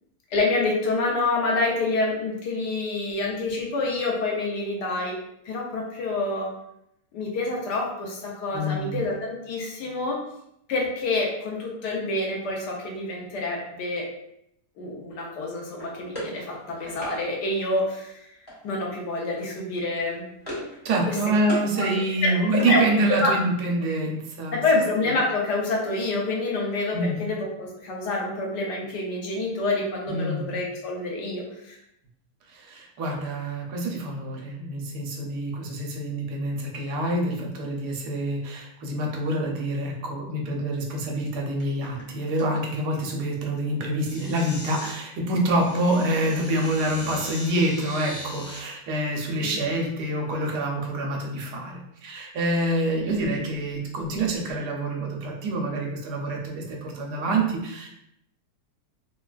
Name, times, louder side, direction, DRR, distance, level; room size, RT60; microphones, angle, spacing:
voice 1, 0.3-5.1 5.4-6.5 7.1-10.2 10.7-14.0 14.8-18.2 18.6-20.2 21.1-21.2 21.8-21.9 22.2-22.8 23.2-23.3 24.5-31.8 49.4-49.5, left 2 dB, 85° left, -2 dB, 1.4 m, -27 dB
voice 2, 8.5-9.0 20.8-24.8 26.9-27.1 30.1-30.5 32.5-57.9, right 1 dB, 80° right, 0 dB, 1.2 m, -26 dB
sound 1, 15.8-17.2 18.5-18.9 19.2-19.4 19.7-20.8 21.1-21.7 22.1-23.3, left 1 dB, 15° left, 1.0 m, -38 dB
sound 2, 41.6-42.1 42.4-42.8 44.0-45.0 45.5-48.6 49.3-49.4 50.2-50.5, left 1 dB, 65° left, 1.2 m, -40 dB
3.6 x 2.2 x 2.3 m, 0.78 s
omnidirectional pair, 1.8 m